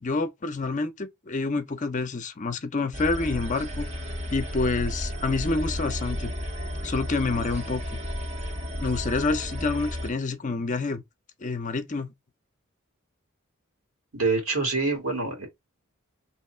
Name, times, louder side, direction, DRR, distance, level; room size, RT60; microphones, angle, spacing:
voice 1, 0.0-3.9 4.2-6.3 6.8-7.8 8.8-11.0 11.4-12.1, left 3 dB, 35° left, 0.6 m, -28 dB
sound 1, 2.9-10.1, equal, 30° right, 0.7 m, -32 dB
voice 2, 14.1-15.5, right 3 dB, 75° right, 1.9 m, -26 dB
3.0 x 2.9 x 4.3 m
head